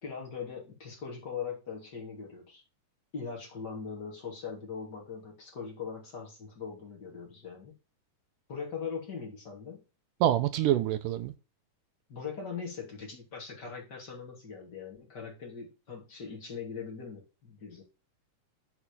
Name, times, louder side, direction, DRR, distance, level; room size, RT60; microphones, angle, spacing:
voice 1, 0.0-2.6 3.1-7.7 8.5-9.8 12.1-17.8, left 6 dB, 30° left, 3.1 m, -41 dB
voice 2, 10.2-11.3, right 12 dB, 80° right, 2.3 m, -26 dB
7.1 x 4.8 x 6.4 m
omnidirectional pair, 3.8 m